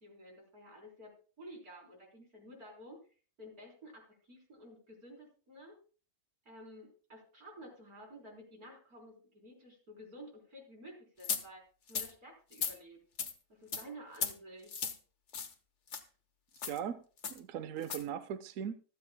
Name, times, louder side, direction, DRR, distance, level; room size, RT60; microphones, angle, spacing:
voice 1, 0.0-3.0 3.4-5.8 6.4-11.6 11.9-13.0 13.5-15.0, equal, 90° right, 0 dB, 4.5 m, -52 dB
sound 1, 11.2-11.4 11.9-12.1 12.5-12.7 13.2-13.3 13.7-13.8 14.1-14.3 14.7-15.0 15.3-15.5 15.9-16.0 16.6-16.8 17.2-17.4 17.8-18.0, left 6 dB, 55° left, 1.3 m, -36 dB
voice 2, 16.6-18.7, right 9 dB, 65° right, 12 dB, 1.0 m, -39 dB
25.5 x 8.5 x 2.2 m, 0.38 s
omnidirectional pair, 1.5 m